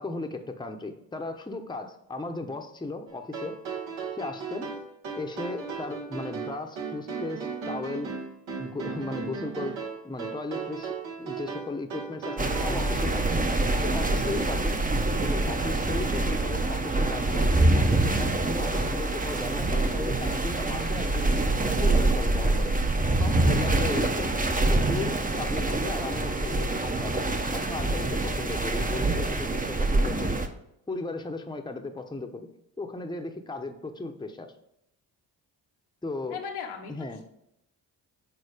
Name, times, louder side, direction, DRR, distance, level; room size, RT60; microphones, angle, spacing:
voice 1, 0.0-3.6 4.1-4.7 5.2-8.1 8.6-9.8 10.0-14.9 15.2-24.4 24.7-30.4 30.9-32.5 32.8-34.5 36.0-36.4 36.9-37.2, left 2 dB, 10° left, 4 dB, 0.9 m, -36 dB
sound 1, 3.1-13.1, right 5 dB, 65° right, 1.6 m, -36 dB
sound 2, 12.4-30.5, right 2 dB, 15° right, 0.9 m, -25 dB
voice 2, 13.0-13.4 36.3-36.9, left 7 dB, 80° left, 1 dB, 1.3 m, -37 dB
6.7 x 4.2 x 4.9 m, 0.80 s
hypercardioid pair, 45°, 49 cm